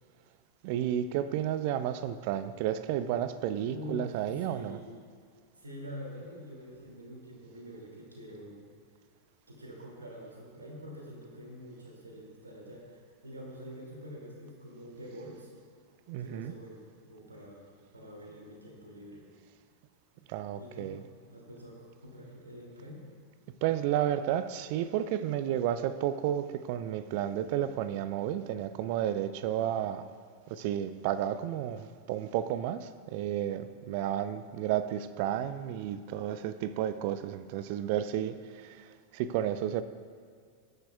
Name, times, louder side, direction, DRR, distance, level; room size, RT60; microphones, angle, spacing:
voice 1, 0.6-4.8 16.1-16.5 20.3-21.0 23.6-30.0 30.5-38.9 39.1-39.8, right 11 dB, 45° right, 13 dB, 0.5 m, -32 dB
voice 2, 3.6-4.2 4.4-5.0 5.6-8.7 9.5-15.5 16.2-19.2 20.6-21.0 21.3-23.0, equal, 80° right, -2 dB, 2.5 m, -46 dB
20.0 x 10.5 x 2.3 m, 2.2 s
figure-of-eight pair, 90°, 0 cm